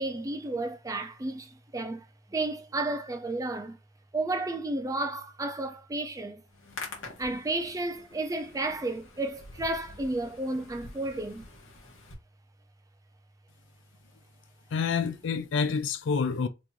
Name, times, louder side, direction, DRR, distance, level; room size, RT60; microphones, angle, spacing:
voice 1, 0.0-2.0 2.3-3.8 4.1-6.4 7.2-11.4, right 2 dB, 15° right, 0.4 m, -32 dB
Hands, 6.5-12.1, left 3 dB, 80° left, 1.0 m, -46 dB
voice 2, 14.7-16.5, left 5 dB, 65° left, 0.4 m, -28 dB
3.0 x 2.6 x 3.4 m
head